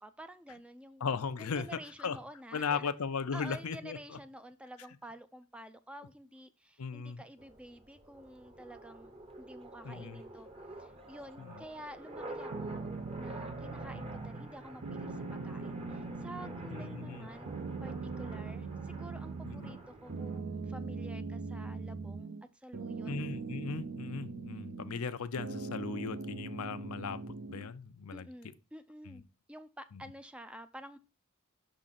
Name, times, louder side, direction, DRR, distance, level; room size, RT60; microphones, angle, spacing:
voice 1, 0.0-1.1 1.4-2.9 3.3-9.1 9.4-10.5 10.8-12.9 13.2-23.1 28.1-29.2 29.5-31.0, right 1 dB, 5° right, 0.4 m, -50 dB
voice 2, 1.0-1.7 2.0-2.2 2.5-4.0 6.8-7.2 9.8-10.2 11.4-11.5 13.9-14.0 16.7-17.3 19.4-19.7 23.1-27.2 27.5-28.2 29.1-29.2, left 5 dB, 90° left, 0.6 m, -37 dB
sound 1, 7.4-20.4, right 1 dB, 25° right, 0.9 m, -48 dB
sound 2, 12.5-14.5 14.8-17.2 17.5-19.8 20.1-22.4 22.7-25.1 25.4-27.7, right 4 dB, 60° right, 0.6 m, -41 dB
6.1 x 3.8 x 5.7 m
head